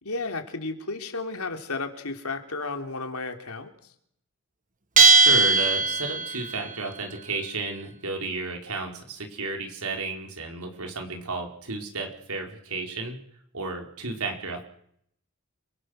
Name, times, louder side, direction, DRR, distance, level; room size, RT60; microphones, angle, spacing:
voice 1, 0.0-3.7, left 3 dB, 80° left, 5 dB, 3.4 m, -33 dB
Bell, 5.0-6.5, right 4 dB, 40° right, 1.5 m, -18 dB
voice 2, 5.1-13.2 13.5-14.6, right 3 dB, 90° right, 3 dB, 4.6 m, -33 dB
29.5 x 23.5 x 6.5 m, 0.71 s
head